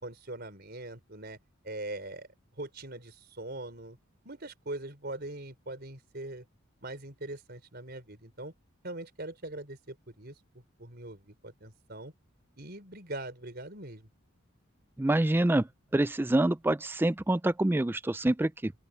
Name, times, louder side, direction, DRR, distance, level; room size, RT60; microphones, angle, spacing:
voice 1, 0.0-1.4 1.6-2.3 2.6-4.0 4.2-6.4 6.8-8.5 8.8-10.3 10.8-12.1 12.6-14.1, right 2 dB, 50° right, 4.7 m, -41 dB
voice 2, 15.0-15.7 15.9-18.7, right 1 dB, 10° right, 0.3 m, -26 dB
open air
head